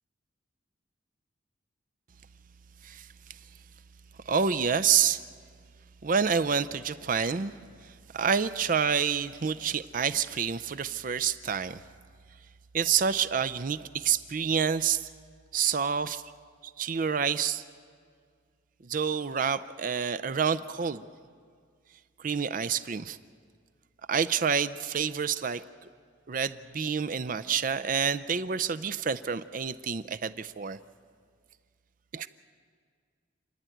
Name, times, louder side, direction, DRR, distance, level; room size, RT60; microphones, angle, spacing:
voice 1, 4.3-5.2 6.0-7.5 7.8-11.8 12.7-15.1 15.5-16.2 16.6-17.6 18.8-21.0 22.2-23.2 24.1-25.9 26.3-30.8 32.1-32.3, right 7 dB, 45° right, 14 dB, 0.5 m, -28 dB
30.0 x 11.0 x 9.1 m, 2.1 s
head